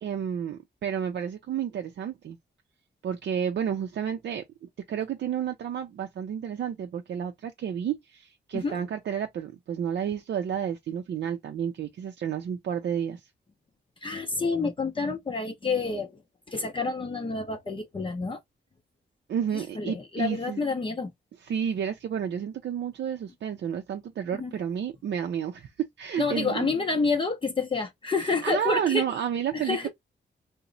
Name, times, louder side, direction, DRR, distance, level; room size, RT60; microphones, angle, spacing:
voice 1, 0.0-2.4 3.0-13.3 19.3-20.6 21.4-25.7 26.0-26.7 28.4-29.9, right 8 dB, 65° right, 0.5 m, -31 dB
voice 2, 14.0-16.2 16.5-18.4 19.5-21.1 24.4-24.5 26.2-29.0 29.5-29.9, left 4 dB, 25° left, 0.6 m, -28 dB
2.9 x 2.0 x 3.7 m
wide cardioid pair, 135°, 19 cm